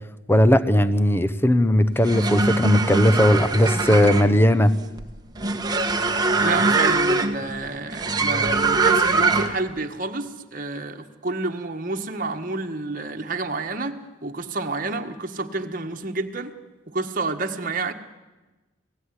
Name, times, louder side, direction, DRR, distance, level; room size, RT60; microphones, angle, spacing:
voice 1, 0.3-4.7, left 1 dB, 10° left, 12 dB, 0.9 m, -18 dB
sound 1, 1.9-9.7, right 3 dB, 20° right, 1.3 m, -22 dB
voice 2, 6.4-16.5 16.9-17.9, right 3 dB, 45° right, 4 dB, 1.5 m, -29 dB
28.0 x 18.0 x 9.8 m, 1.2 s
head